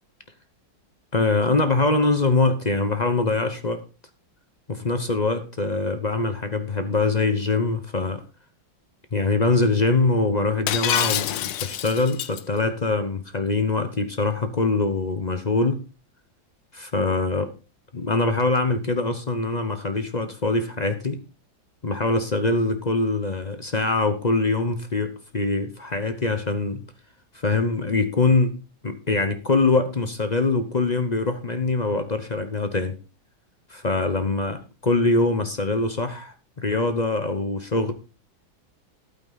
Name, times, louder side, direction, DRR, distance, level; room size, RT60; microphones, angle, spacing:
voice 1, 1.1-3.8 4.7-8.2 9.1-15.8 16.7-17.5 17.9-21.2 21.8-26.8 27.3-28.5 28.8-32.9 33.7-37.9, left 3 dB, 35° left, 9 dB, 0.6 m, -23 dB
Shatter, 10.7-12.4, left 11 dB, 75° left, 1.4 m, -26 dB
12.0 x 9.0 x 4.0 m, 0.31 s
omnidirectional pair, 2.1 m